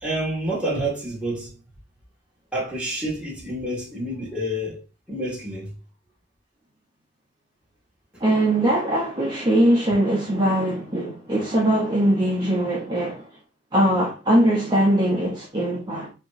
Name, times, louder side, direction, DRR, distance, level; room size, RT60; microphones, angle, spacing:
voice 1, 0.0-1.5 2.5-4.8 5.1-5.7, right 1 dB, 5° right, 1.6 m, -28 dB
voice 2, 8.2-13.3 13.7-16.1, right 1 dB, 25° right, 0.8 m, -21 dB
4.3 x 3.0 x 2.6 m
head